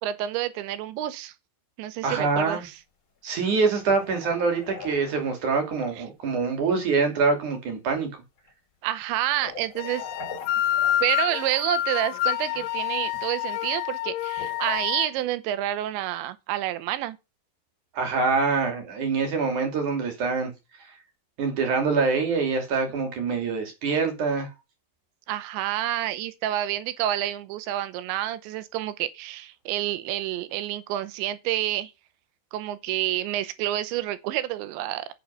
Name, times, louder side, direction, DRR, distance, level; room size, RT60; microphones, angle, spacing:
voice 1, 0.0-1.3 1.8-2.8 6.0-6.1 8.8-10.0 11.0-17.2 25.3-31.9 32.5-35.1, right 13 dB, 85° right, 3.0 m, -28 dB
voice 2, 2.0-2.6 3.2-8.1 18.0-20.5 21.4-24.5, right 4 dB, 45° right, 3.7 m, -25 dB
sound 1, 2.3-2.4 3.5-5.6 6.9-7.0 7.4-7.5 8.4-8.5 9.2-11.5 12.3-12.6 13.0-13.3 14.2-14.8, left 4 dB, 35° left, 2.5 m, -42 dB
sound 2, 9.8-15.1, left 12 dB, 85° left, 3.1 m, -28 dB
9.4 x 6.9 x 5.7 m
omnidirectional pair, 5.3 m